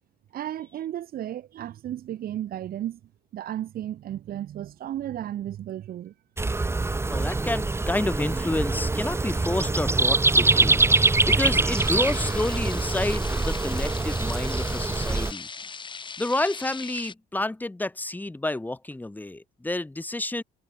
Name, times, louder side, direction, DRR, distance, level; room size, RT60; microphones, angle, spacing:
voice 1, 0.3-3.0 3.3-6.1, right 11 dB, 60° right, 3.5 m, -34 dB
sound 1, 6.4-15.3, right 3 dB, 15° right, 1.8 m, -24 dB
voice 2, 7.1-15.5 16.2-20.4, left 2 dB, 10° left, 2.7 m, -30 dB
sound 2, 11.7-17.1, left 5 dB, 30° left, 2.6 m, -39 dB
cardioid pair, 110°, 17 cm